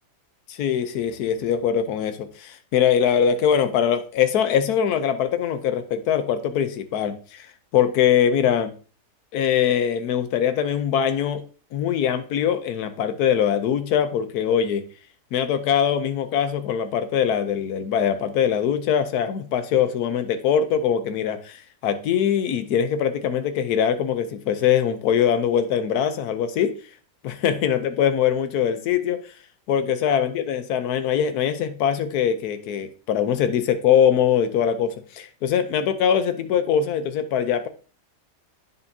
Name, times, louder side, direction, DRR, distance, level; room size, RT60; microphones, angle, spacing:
voice 1, 0.5-7.5 7.7-8.7 9.3-11.4 11.7-14.8 15.3-26.7 27.2-29.2 29.7-37.7, left 8 dB, 65° left, 9 dB, 1.2 m, -22 dB
9.5 x 5.3 x 2.7 m, 0.38 s
omnidirectional pair, 1.9 m